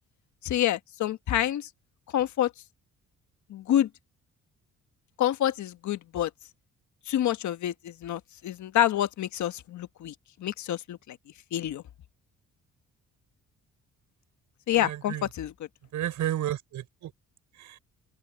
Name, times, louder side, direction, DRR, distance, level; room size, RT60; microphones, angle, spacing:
voice 1, 0.4-1.7 2.1-2.5 3.5-3.9 5.2-6.3 7.1-10.1 10.4-11.2 11.5-11.8 14.7-15.5, left 12 dB, 70° left, 1.4 m, -27 dB
voice 2, 14.7-15.3 15.9-17.1 17.5-17.8, right 12 dB, 75° right, 5.9 m, -32 dB
open air
cardioid pair, 90°, 30 cm